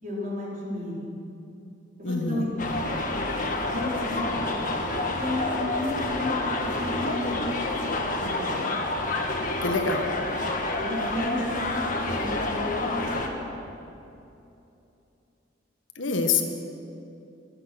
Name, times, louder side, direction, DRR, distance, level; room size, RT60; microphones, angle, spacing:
voice 1, 0.0-1.1 2.0-2.5 3.7-4.4 5.1-7.6 8.2-8.7 10.8-13.5, left 1 dB, 45° right, -6 dB, 4.7 m, -33 dB
voice 2, 2.0-2.5 9.6-10.1 15.9-16.4, left 4 dB, 80° left, 4 dB, 1.5 m, -26 dB
sound 1, 2.6-13.3, left 2 dB, 45° left, 1.6 m, -28 dB
24.5 x 8.7 x 6.3 m, 2.8 s
head